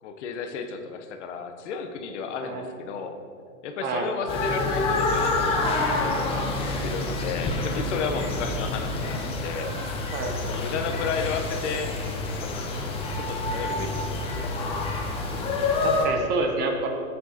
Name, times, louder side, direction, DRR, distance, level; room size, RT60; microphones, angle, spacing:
voice 1, 0.0-3.2 3.6-9.7 10.4-12.0 12.4-14.6, left 5 dB, 55° left, 6 dB, 0.8 m, -33 dB
sound 1, 4.3-16.1, left 2 dB, 15° left, 0.5 m, -27 dB
voice 2, 15.6-16.9, right 3 dB, 25° right, 4 dB, 0.6 m, -28 dB
13.5 x 4.5 x 2.8 m, 2.4 s
hypercardioid pair, 130°, 42 cm